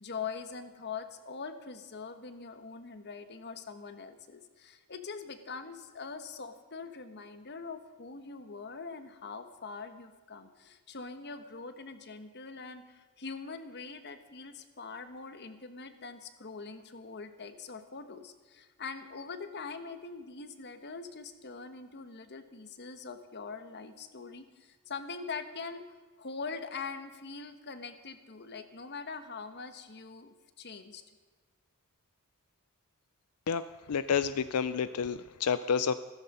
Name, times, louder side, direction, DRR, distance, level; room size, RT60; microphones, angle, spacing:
voice 1, 0.0-25.8 26.2-31.0, left 4 dB, 50° left, 9 dB, 1.3 m, -43 dB
voice 2, 33.5-35.9, left 6 dB, 90° left, 14 dB, 0.5 m, -30 dB
15.5 x 14.0 x 5.4 m, 1.4 s
head